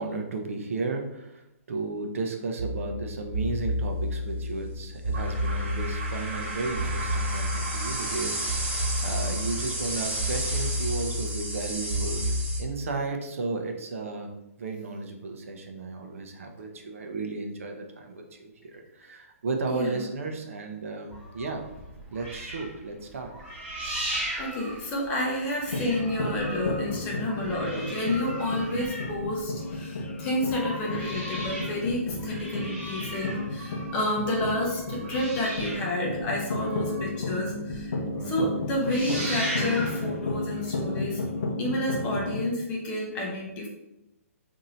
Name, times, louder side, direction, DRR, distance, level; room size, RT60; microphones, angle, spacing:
voice 1, 0.0-12.2 12.6-14.3 14.6-21.6 22.1-23.3 28.6-29.0 32.2-32.5 33.3-33.7 35.0-35.2 38.1-38.5 41.6-41.9, right 3 dB, 60° right, 4 dB, 0.6 m, -34 dB
sound 1, 2.6-12.6, equal, 40° right, 1.2 m, -30 dB
sound 2, 21.1-25.3 25.6-29.8 30.3-37.4 37.7-37.8 38.2-38.4 38.7-40.1 40.9-41.0, right 1 dB, 15° right, 1.4 m, -37 dB
voice 2, 24.4-38.0 38.2-41.2 41.6-43.7, left 1 dB, 15° left, -2 dB, 0.6 m, -30 dB
sound 3, 25.7-42.4, left 2 dB, 65° left, 0.6 m, -33 dB
2.7 x 2.6 x 4.2 m, 0.90 s
hypercardioid pair, 165°, 8 cm